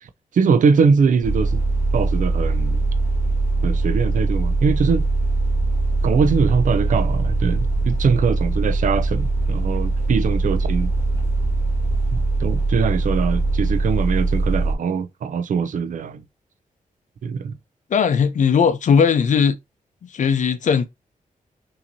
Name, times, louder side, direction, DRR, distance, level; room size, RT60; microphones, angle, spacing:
voice 1, 0.3-1.6 1.9-2.8 3.6-5.0 6.0-10.9 12.1-16.2 17.2-17.6, right 5 dB, 65° right, 0.5 m, -21 dB
sound 1, 1.2-14.7, right 3 dB, 20° left, 1.4 m, -21 dB
voice 2, 17.9-19.5 20.1-20.8, left 6 dB, 60° left, 0.6 m, -18 dB
5.6 x 2.8 x 2.6 m
wide cardioid pair, 170°, 14 cm